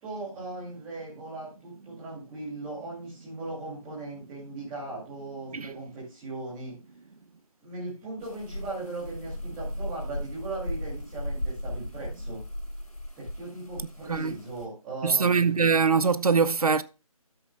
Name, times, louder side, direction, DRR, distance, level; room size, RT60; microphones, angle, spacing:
voice 1, 0.0-6.7 7.6-12.4 13.2-15.7, right 2 dB, 5° right, 2.4 m, -38 dB
sound 1, 8.2-14.7, left 1 dB, 80° left, 5.2 m, -36 dB
voice 2, 15.0-16.8, right 5 dB, 80° right, 0.7 m, -23 dB
13.0 x 7.9 x 2.2 m
figure-of-eight pair, 175°, 19 cm